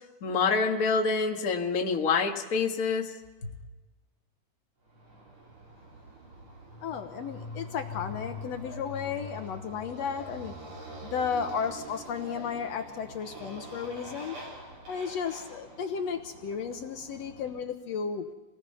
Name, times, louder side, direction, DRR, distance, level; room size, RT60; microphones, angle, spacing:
voice 1, 0.2-3.1, left 4 dB, 35° left, 3 dB, 1.6 m, -26 dB
Motorcycle, 4.9-17.6, left 1 dB, 45° right, 5.8 m, -44 dB
voice 2, 6.8-10.6 11.0-14.4 14.9-18.3, left 6 dB, 70° left, 7 dB, 2.1 m, -34 dB
27.0 x 19.0 x 5.6 m, 1.2 s
omnidirectional pair, 3.3 m